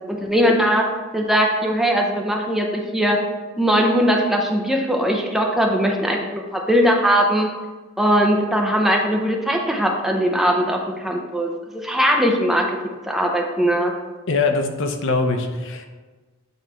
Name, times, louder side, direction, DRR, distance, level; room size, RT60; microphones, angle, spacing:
voice 1, 0.1-0.9 1.1-3.2 3.6-7.5 8.0-12.8 13.1-13.9, equal, ahead, 1 dB, 0.6 m, -20 dB
voice 2, 14.3-15.9, left 3 dB, 65° left, 5 dB, 0.7 m, -22 dB
8.0 x 3.1 x 4.4 m, 1.3 s
head